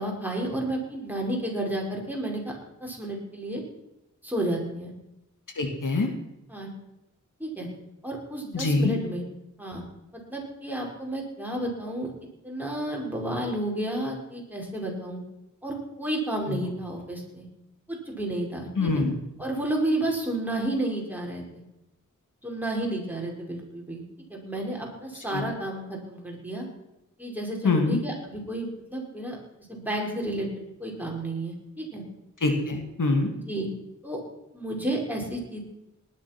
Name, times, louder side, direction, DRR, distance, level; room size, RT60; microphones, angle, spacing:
voice 1, 0.0-2.5 2.8-3.6 4.2-4.9 6.5-6.7 7.4-7.7 8.0-9.2 9.6-9.8 10.1-12.1 12.4-15.2 15.6-17.5 17.9-19.0 19.4-21.6 22.4-24.0 24.3-26.7 27.2-29.4 29.7-30.5 30.8-32.0 33.3-33.7 34.0-34.2 34.5-35.6, right 1 dB, 5° right, -1 dB, 5.4 m, -31 dB
voice 2, 5.6-6.1 8.5-8.9 16.5-16.6 18.8-19.1 25.3-25.4 27.6-28.0 32.4-33.3, left 3 dB, 80° left, 4 dB, 2.5 m, -24 dB
19.0 x 11.0 x 6.1 m, 0.90 s
wide cardioid pair, 70°, 31 cm